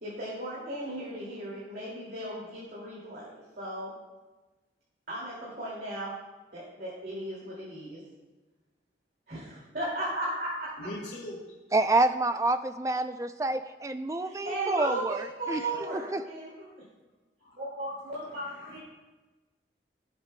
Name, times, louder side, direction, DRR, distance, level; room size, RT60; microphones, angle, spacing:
voice 1, 0.0-3.9 5.1-6.1 6.5-8.0 9.3-10.7 14.2-16.5 17.6-18.8, right 1 dB, 55° right, -6 dB, 2.3 m, -36 dB
voice 2, 10.8-11.3 17.4-17.7 18.2-18.8, left 1 dB, 75° left, -4 dB, 1.9 m, -42 dB
voice 3, 11.7-15.7 15.9-16.2, right 2 dB, 15° right, 10 dB, 0.3 m, -28 dB
16.5 x 7.8 x 2.2 m, 1.2 s
head